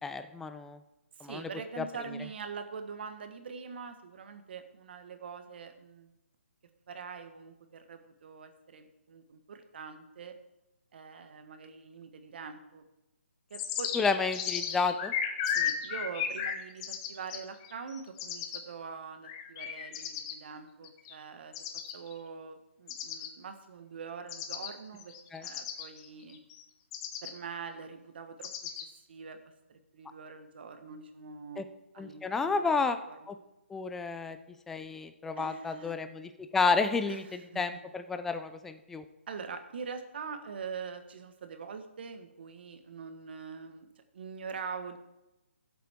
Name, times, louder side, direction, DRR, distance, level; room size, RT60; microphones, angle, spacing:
voice 1, 0.0-0.8 1.2-1.5 1.8-1.9 13.9-15.1 25.3-25.4 31.6-31.7 32.0-33.0 33.3-33.4 33.7-34.4 34.7-39.0, left 4 dB, 5° left, 9 dB, 0.4 m, -31 dB
voice 2, 1.2-6.1 6.9-10.4 10.9-12.8 13.5-13.9 15.5-21.6 21.9-26.4 27.2-28.5 28.7-29.4 29.7-31.7 31.9-32.7 33.1-33.3 35.4-36.0 37.1-37.6 39.3-45.0, right 5 dB, 50° right, 7 dB, 1.4 m, -44 dB
sound 1, 13.5-18.6 19.2-20.3 20.8-21.1 21.5-22.1 22.9-23.3 24.3-24.7 25.0-26.6 26.9-27.3 28.4-28.9, left 8 dB, 25° left, 0.9 m, -35 dB
15.5 x 7.7 x 3.6 m, 0.95 s
hypercardioid pair, 160°, 7 cm